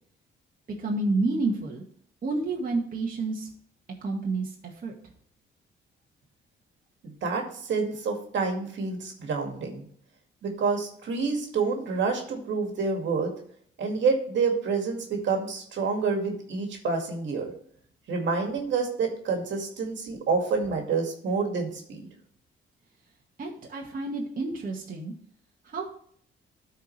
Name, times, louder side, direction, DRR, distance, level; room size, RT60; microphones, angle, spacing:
voice 1, 0.8-1.8 2.2-3.5 4.0-4.6 4.8-4.9 23.4-25.1 25.6-26.0, right 3 dB, 45° right, -1 dB, 1.8 m, -29 dB
voice 2, 7.0-9.8 10.4-13.3 13.8-17.5 18.1-22.1, right 4 dB, 65° right, 2 dB, 2.2 m, -28 dB
13.0 x 4.7 x 3.2 m, 0.62 s
cardioid pair, 90°, 20 cm